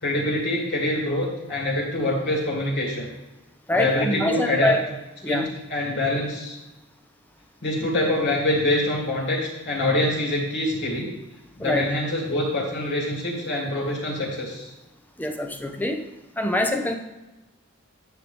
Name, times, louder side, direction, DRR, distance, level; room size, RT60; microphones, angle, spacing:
voice 1, 0.0-3.1 3.7-4.8 5.3-5.4 5.7-6.6 7.6-11.1 11.6-14.7, left 1 dB, 55° left, -3 dB, 2.9 m, -25 dB
voice 2, 3.7-4.8 5.2-5.5 11.6-11.9 15.2-16.0 16.4-17.0, left 1 dB, 10° left, 4 dB, 0.8 m, -24 dB
10.0 x 7.7 x 3.5 m, 1.0 s
head